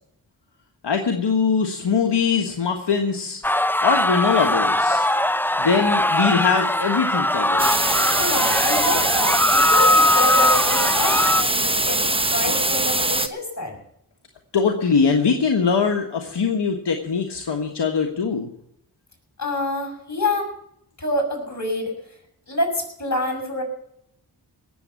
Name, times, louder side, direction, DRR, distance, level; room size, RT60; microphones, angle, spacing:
voice 1, 0.8-3.6 3.8-5.1 5.6-7.7 14.5-18.5, left 5 dB, 70° left, 3 dB, 1.5 m, -22 dB
sound 1, 3.4-11.4, left 1 dB, 5° left, 0.7 m, -20 dB
sound 2, 7.6-13.3, right 2 dB, 15° right, 1.0 m, -22 dB
voice 2, 8.2-13.8 19.4-20.5 21.0-22.2 22.5-23.6, left 1 dB, 40° left, 2 dB, 6.4 m, -27 dB
18.0 x 7.5 x 8.2 m, 0.74 s
cardioid pair, 45°, 42 cm